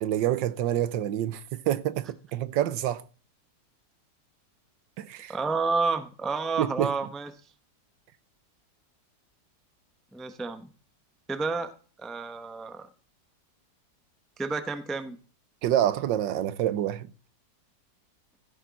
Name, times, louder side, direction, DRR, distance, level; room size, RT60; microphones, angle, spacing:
voice 1, 0.0-3.0 5.0-5.3 6.6-6.9 15.6-17.1, right 12 dB, 85° right, 1.4 m, -27 dB
voice 2, 5.3-7.3 10.1-10.7 11.3-11.7 12.0-12.9 14.4-15.2, right 4 dB, ahead, 0.5 m, -30 dB
15.5 x 6.4 x 4.2 m
omnidirectional pair, 2.0 m